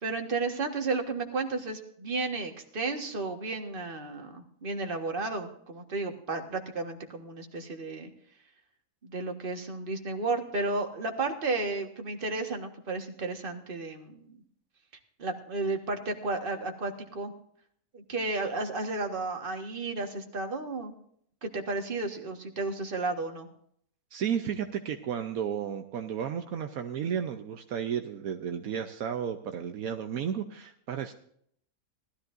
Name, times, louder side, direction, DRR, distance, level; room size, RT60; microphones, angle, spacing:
voice 1, 0.0-8.1 9.0-14.4 15.2-17.3 17.9-20.9 21.4-23.5, right 3 dB, 35° right, 4 dB, 1.7 m, -33 dB
voice 2, 24.1-31.1, right 8 dB, 75° right, 6 dB, 1.2 m, -33 dB
19.5 x 13.0 x 2.6 m, 0.66 s
omnidirectional pair, 1.5 m